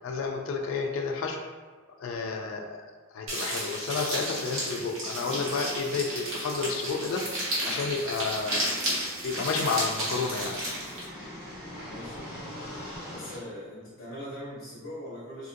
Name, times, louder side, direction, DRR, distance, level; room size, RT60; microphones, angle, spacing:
voice 1, 0.0-1.4 2.0-2.8 3.1-7.2 7.6-8.6 9.2-10.6, left 4 dB, 70° left, 2 dB, 0.3 m, -31 dB
sound 1, 3.3-11.1, right 1 dB, 75° right, 1.0 m, -32 dB
sound 2, 6.1-13.4, left 1 dB, 5° right, 1.2 m, -44 dB
voice 2, 11.9-15.5, equal, 50° left, -10 dB, 0.8 m, -42 dB
2.8 x 2.4 x 2.6 m, 1.5 s
head